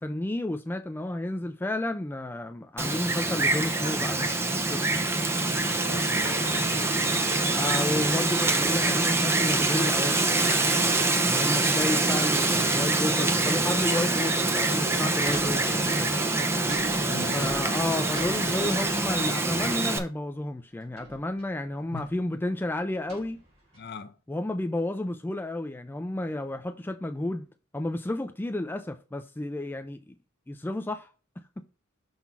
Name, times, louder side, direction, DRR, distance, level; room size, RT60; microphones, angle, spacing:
voice 1, 0.0-4.8 7.5-10.3 11.3-16.1 17.3-23.4 24.3-27.4 27.7-30.1 30.5-31.1 31.4-31.6, left 1 dB, 10° left, 0.3 m, -31 dB
Wind, 2.8-20.0, right 2 dB, 10° right, 0.8 m, -25 dB
voice 2, 5.8-7.3 17.0-17.7 21.9-22.1 23.8-24.1, left 4 dB, 50° left, 0.7 m, -40 dB
sound 1, 15.2-16.1 16.7-19.2 19.5-19.8 20.9-21.5 21.8-22.2 23.1-23.8, right 1 dB, 30° right, 3.6 m, -43 dB
5.9 x 4.0 x 5.6 m
head